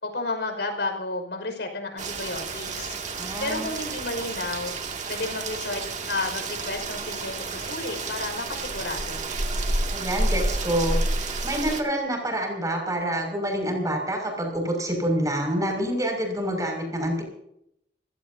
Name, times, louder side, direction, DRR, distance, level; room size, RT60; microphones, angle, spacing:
voice 1, 0.0-3.0 3.4-4.7 5.1-9.3, left 2 dB, 80° left, 4 dB, 5.6 m, -32 dB
Rain, 2.0-11.8, right 2 dB, 45° right, 2.4 m, -30 dB
voice 2, 3.2-3.7 9.9-11.0 11.4-17.2, right 1 dB, 20° right, 2 dB, 6.2 m, -27 dB
27.5 x 17.5 x 2.8 m, 0.75 s
head